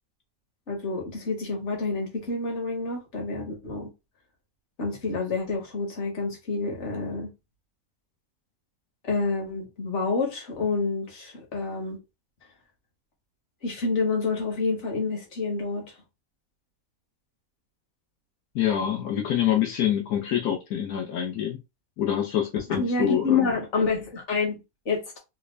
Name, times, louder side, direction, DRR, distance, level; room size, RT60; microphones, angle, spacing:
voice 1, 0.7-3.9 4.8-7.3 9.0-12.0 13.6-15.9 22.8-25.2, left 4 dB, 55° left, 1.5 m, -28 dB
voice 2, 18.5-21.6 22.0-23.6, left 10 dB, 80° left, 1.3 m, -26 dB
3.5 x 2.4 x 3.2 m
omnidirectional pair, 1.5 m